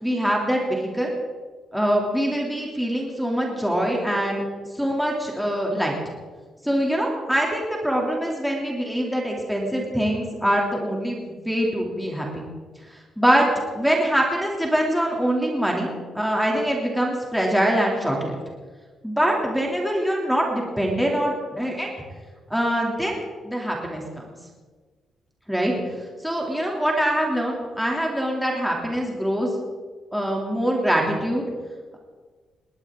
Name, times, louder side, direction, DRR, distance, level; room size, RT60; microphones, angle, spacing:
voice 1, 0.0-1.1 1.7-4.4 4.8-6.0 6.6-12.5 13.2-13.5 13.7-18.4 19.0-21.9 22.5-24.4 25.5-25.7 26.2-29.5 30.1-31.4, equal, ahead, -2 dB, 2.6 m, -24 dB
20.0 x 19.5 x 3.6 m, 1.4 s
wide cardioid pair, 170°, 0 cm